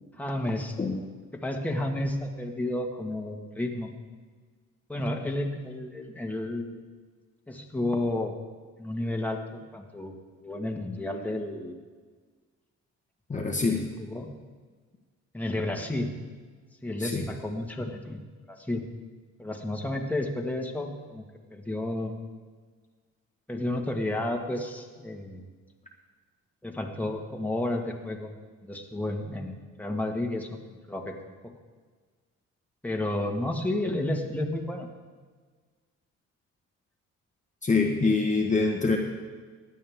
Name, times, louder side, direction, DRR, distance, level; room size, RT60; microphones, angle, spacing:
voice 1, 0.2-0.7 1.3-3.9 4.9-6.8 7.5-8.3 8.8-10.1 10.4-11.8 13.3-13.7 14.0-14.4 15.3-16.1 16.8-18.9 19.4-21.2 21.5-22.2 23.5-25.4 26.6-28.3 28.6-31.1 31.4-31.5 32.8-34.9, left 1 dB, 5° left, 1 dB, 1.6 m, -31 dB
voice 2, 13.3-13.8 17.0-17.2 37.6-39.0, left 3 dB, 25° left, 0 dB, 1.3 m, -25 dB
16.0 x 10.0 x 3.6 m, 1.5 s
cardioid pair, 90°, 30 cm